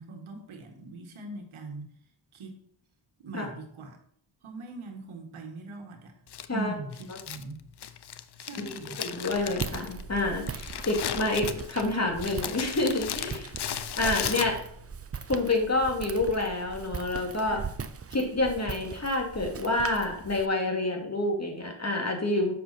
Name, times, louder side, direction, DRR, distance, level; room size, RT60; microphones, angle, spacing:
voice 1, 0.0-1.9 2.3-2.6 3.2-4.0 4.4-6.1 6.5-7.6 8.4-9.0 17.5-17.7, right 3 dB, 80° right, 4 dB, 1.7 m, -41 dB
Crumpling crinkling, 6.3-14.9, left 9 dB, 55° left, 0.7 m, -36 dB
voice 2, 9.0-13.5 13.9-14.6 15.3-17.6 18.1-22.5, left 2 dB, 30° left, 2 dB, 2.4 m, -28 dB
Walk footsteps, 9.3-20.5, right 5 dB, 30° right, 0.7 m, -40 dB
7.9 x 6.4 x 4.1 m, 0.66 s
cardioid pair, 55°, 48 cm